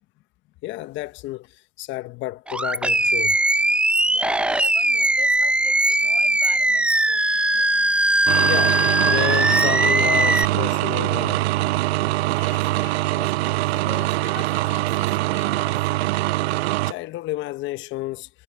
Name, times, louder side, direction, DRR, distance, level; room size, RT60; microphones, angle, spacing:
voice 1, 0.6-3.4 8.4-11.4 16.9-18.3, left 17 dB, 35° left, 1.1 m, -31 dB
Animal, 2.5-10.4, right 1 dB, 5° right, 0.7 m, -20 dB
voice 2, 4.1-7.7 12.3-15.9, left 11 dB, 85° left, 5.4 m, -43 dB
sound 1, 8.3-16.9, right 18 dB, 70° right, 0.5 m, -23 dB
hypercardioid pair, 125°, 33 cm